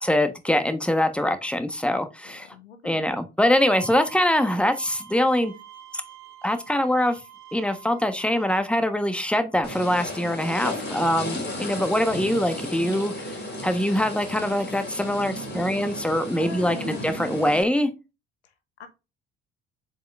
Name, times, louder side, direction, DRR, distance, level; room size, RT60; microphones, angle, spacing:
voice 1, 0.0-2.5 2.8-5.5 5.9-6.0 6.4-7.2 7.5-17.9, left 1 dB, 5° left, 8 dB, 1.3 m, -23 dB
voice 2, 2.2-3.1 16.4-17.1 18.4-18.5 18.8-18.9, left 5 dB, 85° left, 9 dB, 1.1 m, -41 dB
Bowed string instrument, 3.6-8.6, right 10 dB, 55° right, 1.4 m, -46 dB
sound 1, 9.6-17.6, left 1 dB, 30° left, 3.8 m, -34 dB
7.6 x 5.1 x 2.6 m, 0.28 s
hypercardioid pair, 55°, 32 cm